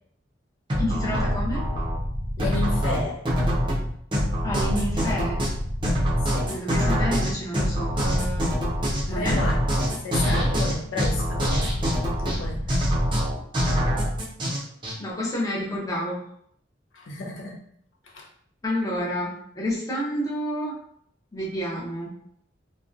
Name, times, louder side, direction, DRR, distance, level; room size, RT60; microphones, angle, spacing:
sound 1, 0.7-15.0, equal, 25° right, 0.5 m, -24 dB
voice 1, 0.8-1.6 4.4-5.4 6.5-8.5 9.1-9.4 12.2-12.6 15.0-16.2 18.6-20.7 21.3-22.1, equal, 20° left, -5 dB, 0.6 m, -29 dB
voice 2, 2.4-3.2 6.2-6.5 9.1-9.6 10.0-11.7 12.3-12.6 16.9-17.6 18.1-18.3, left 3 dB, 90° left, 0 dB, 0.5 m, -32 dB
2.5 x 2.1 x 2.4 m, 0.67 s
head